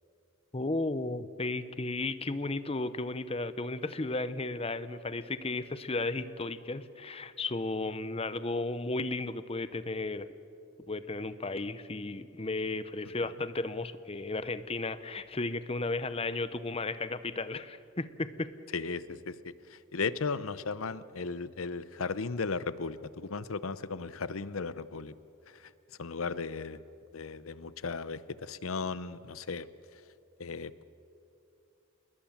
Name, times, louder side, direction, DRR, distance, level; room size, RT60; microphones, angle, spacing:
voice 1, 0.5-10.3 10.9-18.5, left 2 dB, 30° left, 13 dB, 0.8 m, -34 dB
voice 2, 18.7-25.1 25.5-25.7 26.0-26.8 27.1-29.7 30.4-30.8, left 4 dB, 85° left, 15 dB, 0.8 m, -36 dB
28.0 x 21.0 x 7.3 m, 2.6 s
head